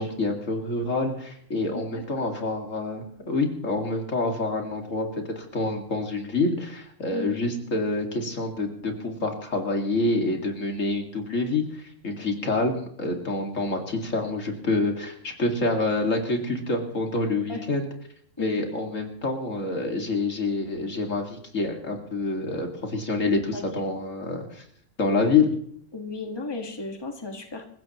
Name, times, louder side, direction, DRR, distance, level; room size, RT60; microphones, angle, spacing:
voice 1, 0.0-17.9 18.4-24.6 25.0-25.5, left 3 dB, 70° left, 2 dB, 2.6 m, -27 dB
voice 2, 1.9-2.3 7.1-7.6 17.5-17.7 18.4-18.6 23.5-23.8 25.9-27.7, left 3 dB, 20° left, 3 dB, 1.8 m, -35 dB
27.0 x 15.5 x 3.1 m, 0.64 s
omnidirectional pair, 1.4 m